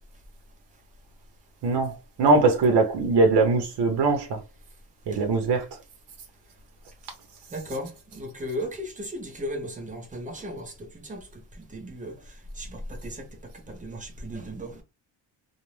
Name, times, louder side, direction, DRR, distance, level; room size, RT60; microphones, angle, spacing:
voice 1, 1.6-4.4 5.1-5.7, right 3 dB, 65° right, 0.7 m, -21 dB
voice 2, 7.5-11.3 11.7-12.2 12.6-13.3 13.7-14.8, equal, 20° right, 0.6 m, -36 dB
2.5 x 2.0 x 3.0 m
cardioid pair, 150°, 43 cm